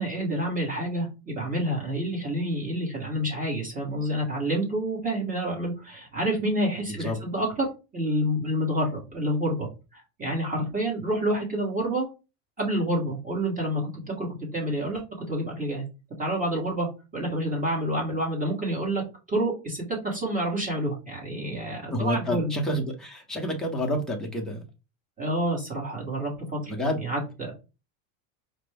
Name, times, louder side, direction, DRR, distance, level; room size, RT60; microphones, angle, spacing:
voice 1, 0.0-12.1 12.6-15.8 16.2-16.9 17.1-19.0 19.3-22.5 25.2-26.7 27.0-27.5, right 1 dB, 20° right, -3 dB, 1.4 m, -28 dB
voice 2, 6.8-7.2 21.9-24.6 26.7-27.0, equal, ahead, -1 dB, 0.8 m, -29 dB
5.0 x 2.2 x 3.4 m, 0.30 s
supercardioid pair, 145°, 41 cm